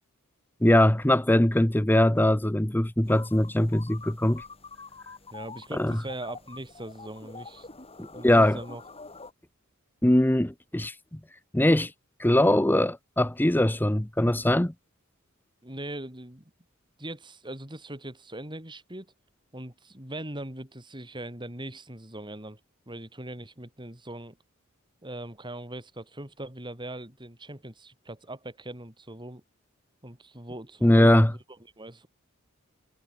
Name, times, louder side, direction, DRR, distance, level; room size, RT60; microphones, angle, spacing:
voice 1, 0.6-4.4 5.8-6.0 8.0-8.6 10.0-11.2 11.5-11.9 12.2-14.7 30.8-31.3, left 1 dB, 10° left, 0.8 m, -21 dB
sound 1, 3.0-9.3, left 4 dB, 30° left, 7.0 m, -46 dB
voice 2, 5.3-7.7 8.1-8.8 15.6-16.4 17.0-19.1 19.5-22.6 22.9-24.4 25.0-29.4 30.0-32.1, right 1 dB, 20° right, 5.4 m, -40 dB
head